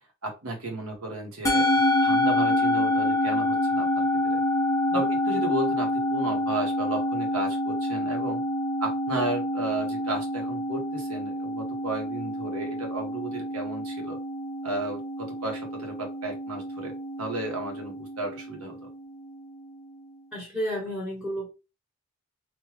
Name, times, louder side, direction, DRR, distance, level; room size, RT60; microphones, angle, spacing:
voice 1, 0.2-1.7 2.0-4.4 4.9-8.4 8.8-14.2 14.6-18.9, right 2 dB, 75° right, 2 dB, 1.1 m, -33 dB
Musical instrument, 1.5-20.0, left 1 dB, 15° left, 0.5 m, -27 dB
voice 2, 20.3-21.5, equal, 5° right, -6 dB, 1.1 m, -32 dB
3.1 x 2.2 x 3.2 m, 0.28 s
head